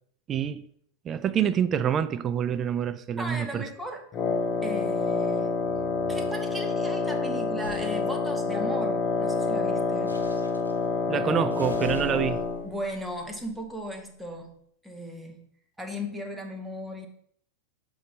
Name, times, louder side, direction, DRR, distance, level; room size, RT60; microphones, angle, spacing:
voice 1, 0.3-0.7 1.0-3.6 11.1-12.4, right 9 dB, 25° right, 0.3 m, -27 dB
voice 2, 3.2-4.0 4.6-5.6 6.1-10.2 12.6-14.5 14.8-15.4 15.8-17.1, equal, 5° right, 1.0 m, -36 dB
Wind instrument woodwind instrument, 4.1-12.7, left 4 dB, 25° left, 0.8 m, -27 dB
sound 1, 7.6-7.9 10.1-10.8 11.5-14.1, equal, 90° left, 0.7 m, -42 dB
6.6 x 3.9 x 4.3 m
figure-of-eight pair, 90°, 0 cm